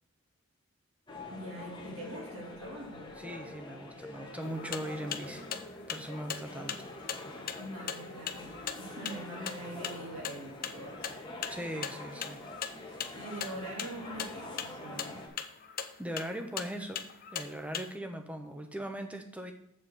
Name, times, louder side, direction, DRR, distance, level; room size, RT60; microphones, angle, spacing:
sound 1, 1.1-15.3, left 2 dB, 20° left, 1.4 m, -45 dB
voice 1, 1.3-3.1 7.6-11.1 12.8-15.2, right 1 dB, 85° right, -3 dB, 2.5 m, -44 dB
voice 2, 3.2-5.4 5.9-6.8 11.5-12.4 16.0-17.0 17.3-19.5, right 1 dB, 5° right, 5 dB, 0.9 m, -39 dB
sound 2, 4.4-17.9, left 8 dB, 40° left, 0.6 m, -40 dB
7.7 x 4.4 x 6.8 m, 0.81 s
head